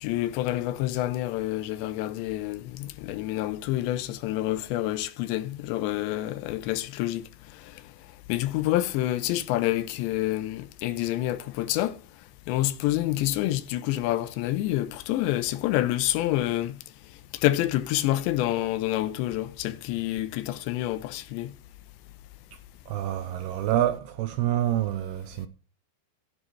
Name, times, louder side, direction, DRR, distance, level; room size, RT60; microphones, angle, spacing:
voice 1, 0.0-7.2 8.3-11.9 12.5-16.8 17.4-21.5, left 15 dB, 85° left, 3.0 m, -27 dB
voice 2, 22.9-25.5, right 12 dB, 80° right, 2.3 m, -27 dB
14.0 x 9.7 x 3.2 m
omnidirectional pair, 5.1 m